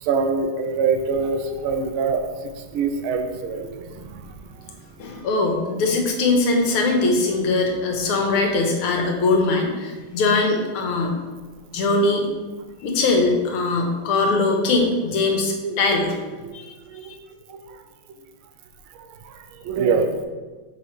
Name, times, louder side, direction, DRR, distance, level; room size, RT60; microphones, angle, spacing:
voice 1, 0.0-2.2 2.7-4.3 15.6-15.9 16.4-16.5 16.9-17.1 17.5-17.6 19.2-19.3 19.6-20.1, right 5 dB, 80° right, 6 dB, 1.5 m, -24 dB
voice 2, 5.0-11.1 11.7-12.3 12.8-16.2 16.5-16.8 17.1-17.2, left 3 dB, 85° left, 2 dB, 1.8 m, -21 dB
6.2 x 5.0 x 3.1 m, 1.4 s
omnidirectional pair, 2.4 m